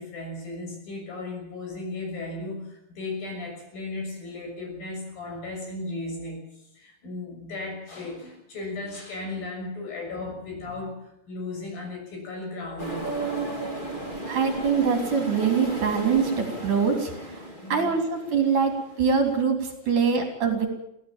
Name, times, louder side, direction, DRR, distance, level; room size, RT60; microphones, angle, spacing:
voice 1, 0.0-13.1 17.5-18.0 18.5-18.7 19.8-20.1, left 2 dB, 55° left, 2 dB, 8.2 m, -36 dB
sound 1, 12.8-19.4, right 2 dB, 15° left, 2.0 m, -35 dB
voice 2, 14.3-17.4 17.7-20.7, right 6 dB, 50° right, 4 dB, 4.4 m, -24 dB
24.0 x 16.5 x 7.4 m, 0.80 s
omnidirectional pair, 4.9 m